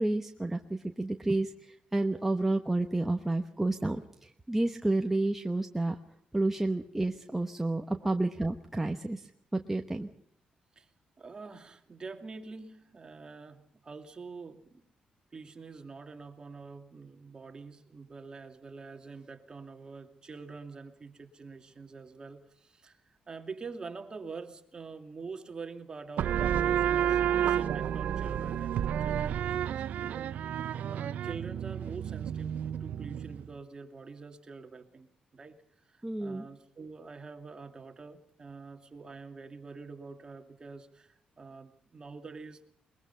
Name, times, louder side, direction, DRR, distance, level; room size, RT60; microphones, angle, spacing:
voice 1, 0.0-6.0 6.3-10.1 36.0-36.5, right 2 dB, 10° right, 4 dB, 1.1 m, -30 dB
voice 2, 11.2-14.8 15.3-30.3 30.9-42.7, right 4 dB, 30° right, 5 dB, 2.4 m, -46 dB
sound 1, 26.2-33.5, right 9 dB, 75° right, 0.9 m, -30 dB
22.0 x 22.0 x 5.6 m, 0.70 s
cardioid pair, 115°, 3 cm